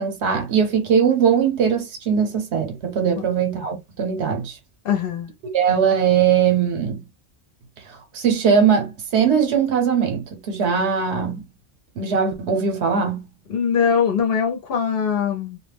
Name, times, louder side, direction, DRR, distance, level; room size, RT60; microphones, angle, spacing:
voice 1, 0.0-4.6 5.5-7.0 8.1-11.4 12.0-13.3, right 7 dB, 80° right, 0.9 m, -20 dB
voice 2, 4.8-5.3 13.5-15.6, left 7 dB, 60° left, 0.9 m, -21 dB
2.2 x 2.1 x 3.3 m
omnidirectional pair, 1.1 m